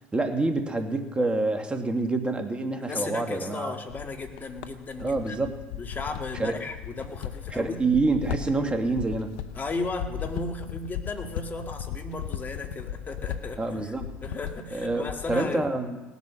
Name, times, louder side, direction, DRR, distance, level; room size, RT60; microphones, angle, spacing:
voice 1, 0.1-3.7 5.0-5.5 6.4-6.5 7.5-9.3 13.6-14.1 14.7-16.0, right 3 dB, 15° right, 5 dB, 2.1 m, -27 dB
voice 2, 2.8-5.5 5.8-7.9 9.6-13.9 14.2-15.7, left 3 dB, 30° left, 4 dB, 2.1 m, -35 dB
sound 1, 3.9-15.5, left 10 dB, 75° left, 0.8 m, -37 dB
18.5 x 8.4 x 6.4 m, 1.1 s
hypercardioid pair, 75°, 6 cm